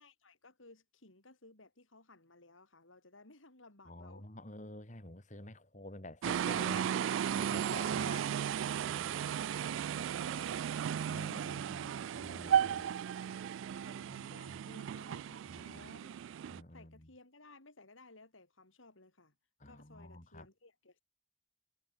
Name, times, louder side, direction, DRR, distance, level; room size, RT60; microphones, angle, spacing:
voice 1, 0.0-4.3 7.3-8.7 9.1-10.7 11.0-11.9 12.3-16.2 16.7-19.3 19.6-21.0, left 2 dB, 80° left, 4.6 m, -59 dB
voice 2, 3.9-6.9 7.3-9.4 11.1-12.9 14.0-14.3 15.5-15.9 16.5-17.1 19.6-20.5, left 1 dB, 35° left, 4.0 m, -50 dB
sound 1, 6.2-16.6, right 9 dB, 70° right, 0.3 m, -35 dB
head